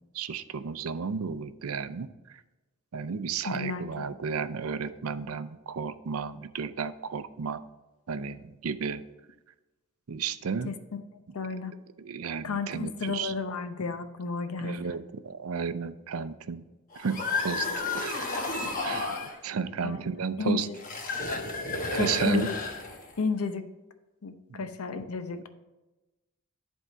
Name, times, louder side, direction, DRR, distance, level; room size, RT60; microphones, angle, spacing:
voice 1, 0.1-2.1 2.9-7.6 8.1-9.0 10.1-10.7 12.0-13.3 14.6-16.6 17.0-17.7 17.9-18.5 18.8-19.2 19.4-20.7 21.9-22.5 24.5-24.6, right 6 dB, 80° right, 13 dB, 0.5 m, -33 dB
voice 2, 3.4-4.1 10.7-11.0 11.3-11.7 12.4-14.8 19.8-20.8 21.9-22.6 23.2-23.7 24.2-25.5, left 4 dB, 85° left, 9 dB, 0.7 m, -33 dB
sound 1, 16.9-19.4 20.7-23.2, left 3 dB, 40° left, 1.0 m, -32 dB
11.0 x 3.6 x 5.5 m, 1.1 s
head